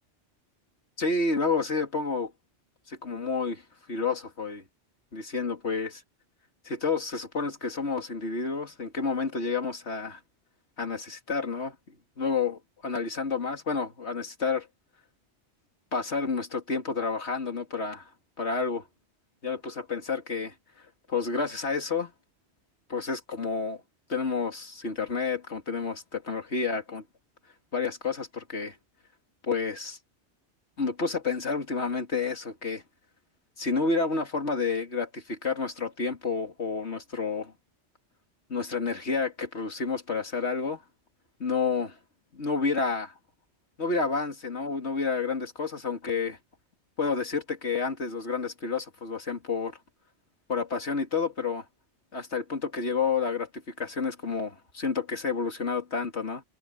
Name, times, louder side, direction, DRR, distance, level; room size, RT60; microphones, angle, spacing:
voice 1, 1.0-2.3 2.9-3.6 3.9-4.6 5.1-6.0 6.6-10.2 10.8-14.7 15.9-18.1 18.4-18.9 19.4-20.5 21.1-22.1 22.9-23.8 24.1-27.0 27.7-28.8 29.4-30.0 30.8-32.8 33.6-37.5 38.5-40.8 41.4-42.0 42.3-43.1 43.8-46.4 47.0-49.8 50.5-51.6 52.1-56.4, left 4 dB, 70° left, 2.9 m, -30 dB
omnidirectional pair, 1.2 m